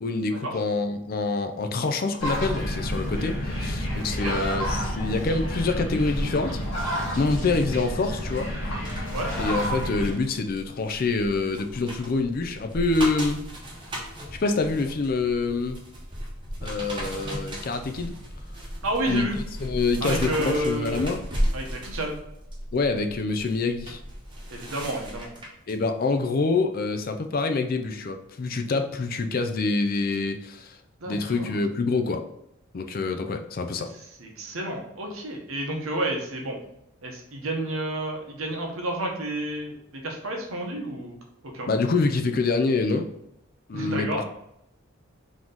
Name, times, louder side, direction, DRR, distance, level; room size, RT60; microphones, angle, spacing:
voice 1, 0.0-6.6 7.2-8.5 8.9-9.0 9.4-13.4 14.4-15.8 16.6-18.1 19.1-19.3 19.6-21.2 22.7-24.0 25.7-30.8 31.1-32.2 32.7-33.9 41.7-43.1 43.7-44.2, left 3 dB, 40° left, 6 dB, 0.4 m, -26 dB
sound 1, 2.2-10.1, equal, 65° left, 1.5 m, -29 dB
sound 2, 8.9-25.7 26.2-26.4, equal, 20° right, 0.9 m, -35 dB
voice 2, 18.8-19.4 20.0-21.1 21.5-22.2 24.5-25.3 31.0-31.5 34.2-36.6 37.0-41.2 41.4-41.7 43.7-44.2, right 1 dB, 80° right, 1 dB, 1.0 m, -30 dB
4.1 x 3.0 x 3.8 m, 0.79 s
head